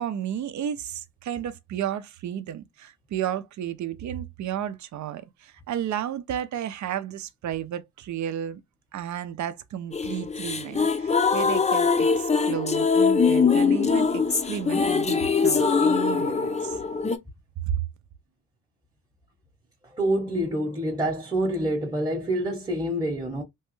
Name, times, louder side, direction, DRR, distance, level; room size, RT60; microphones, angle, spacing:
voice 1, 0.0-8.6 8.9-16.8 17.7-17.9, right 10 dB, 60° right, 0.6 m, -32 dB
sound 1, 9.9-17.2, left 5 dB, 20° left, 0.5 m, -22 dB
voice 2, 19.9-23.4, right 1 dB, 10° right, 0.9 m, -27 dB
3.1 x 2.2 x 3.0 m
cardioid pair, 80°, 32 cm